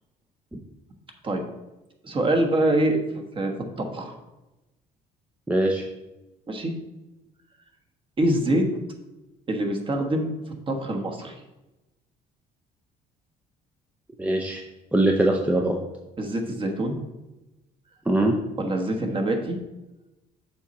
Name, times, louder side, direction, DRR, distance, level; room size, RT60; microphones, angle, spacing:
voice 1, 2.0-4.2 6.5-6.7 8.2-8.6 9.5-10.3 10.7-11.3 16.2-17.0 18.6-19.6, right 1 dB, 30° right, 3 dB, 1.3 m, -25 dB
voice 2, 5.5-5.8 14.2-14.6 14.9-15.8 18.1-18.3, right 1 dB, 10° right, 1 dB, 0.6 m, -22 dB
7.1 x 5.0 x 4.2 m, 1.0 s
cardioid pair, 110°, 17 cm